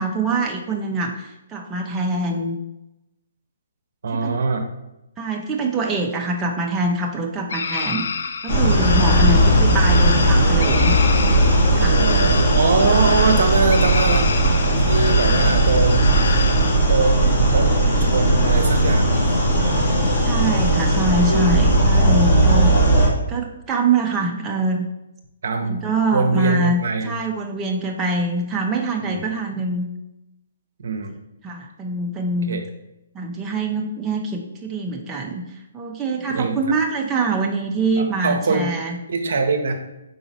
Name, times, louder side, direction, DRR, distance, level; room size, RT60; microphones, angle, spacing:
voice 1, 0.0-2.6 4.1-4.3 5.2-8.1 8.4-11.0 11.7-12.0 20.2-22.7 23.3-24.9 25.6-29.9 31.4-32.6 33.1-39.0, right 3 dB, 15° right, 0 dB, 0.5 m, -24 dB
voice 2, 4.0-4.6 9.1-9.6 11.9-14.3 14.8-16.1 16.9-17.7 18.1-19.2 22.0-22.2 22.4-22.5 25.4-25.8 26.1-27.1 29.0-29.2 30.8-31.1 32.5-32.6 36.4-36.6 38.0-38.7 39.1-39.7, right 4 dB, 65° right, 5 dB, 0.7 m, -22 dB
sound 1, 7.5-16.8, left 5 dB, 70° left, 0.3 m, -28 dB
sound 2, 8.5-23.1, right 1 dB, 50° left, 1.7 m, -17 dB
4.8 x 3.9 x 2.7 m, 0.92 s
hypercardioid pair, 140°, 0 cm